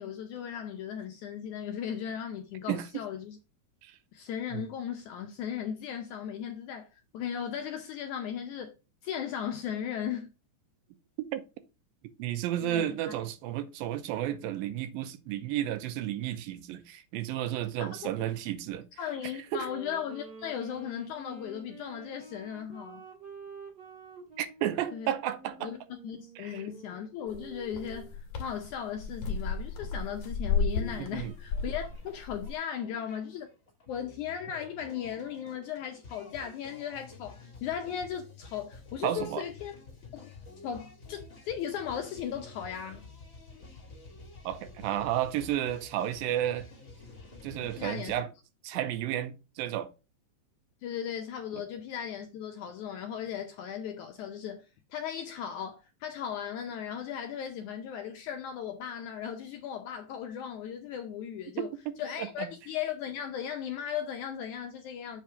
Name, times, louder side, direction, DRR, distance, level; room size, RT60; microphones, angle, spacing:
voice 1, 0.0-3.4 4.1-8.7 9.0-10.3 12.6-13.1 17.8-17.9 18.2-18.3 19.0-23.0 24.9-25.1 25.6-25.8 26.0-33.5 33.9-39.7 40.1-40.3 40.6-43.0 47.6-48.1 50.8-61.7 62.0-65.2, left 9 dB, 80° left, 1.8 m, -37 dB
voice 2, 12.2-18.9 19.5-19.7 24.4-25.7 26.4-26.6 31.0-31.3 39.0-39.4 44.5-46.7 47.4-48.3 48.6-49.9 62.2-62.5, right 12 dB, 85° right, 2.4 m, -32 dB
Wind instrument woodwind instrument, 19.5-28.2, right 5 dB, 50° right, 1.3 m, -48 dB
sound 1, 27.3-32.5, left 5 dB, 55° left, 2.1 m, -33 dB
sound 2, 31.2-48.2, left 3 dB, 30° left, 1.6 m, -51 dB
7.5 x 3.5 x 5.5 m
omnidirectional pair, 4.2 m